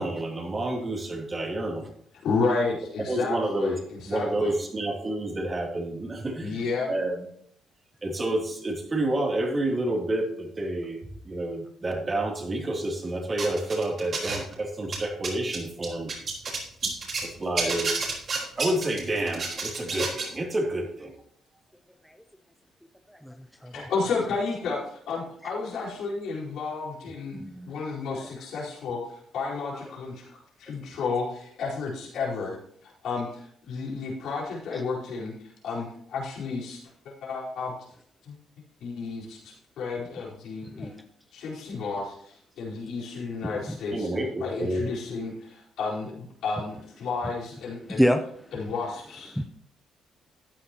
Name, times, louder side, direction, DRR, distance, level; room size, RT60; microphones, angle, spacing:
voice 1, 0.0-1.9 3.1-3.8 4.0-6.6 6.9-7.3 8.0-11.0 11.2-16.1 16.8-16.9 17.2-18.0 18.3-21.1 43.9-44.8, right 1 dB, 30° right, 1 dB, 3.0 m, -29 dB
voice 2, 2.2-4.5 6.4-6.9 23.7-27.4 27.6-32.6 33.0-35.3 35.6-36.8 37.0-37.7 38.3-38.4 38.8-40.9 41.3-44.1 44.4-48.0 48.5-49.4, left 4 dB, 80° left, -5 dB, 4.5 m, -32 dB
sound 1, 13.4-14.5 14.8-17.3 17.6-20.3, right 4 dB, 50° right, 4.2 m, -30 dB
voice 3, 27.3-27.7 28.1-28.3 29.7-29.8 34.7-34.8 40.7-40.9 43.7-43.8 47.9-48.2 49.3-49.4, equal, ahead, 5 dB, 0.7 m, -27 dB
13.5 x 9.8 x 3.0 m, 0.64 s
cardioid pair, 90°, 0 cm